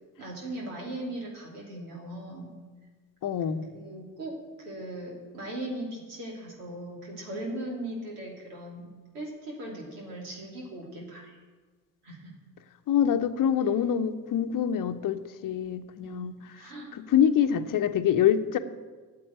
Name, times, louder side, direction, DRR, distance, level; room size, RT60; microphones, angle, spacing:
voice 1, 0.2-2.5 3.7-8.9 9.1-11.4 12.0-12.3 16.0-16.9, right 1 dB, 75° right, -2 dB, 3.0 m, -39 dB
voice 2, 3.2-3.7 12.9-18.6, left 9 dB, 45° left, 9 dB, 0.9 m, -26 dB
8.6 x 7.7 x 9.0 m, 1.4 s
figure-of-eight pair, 50°, 46 cm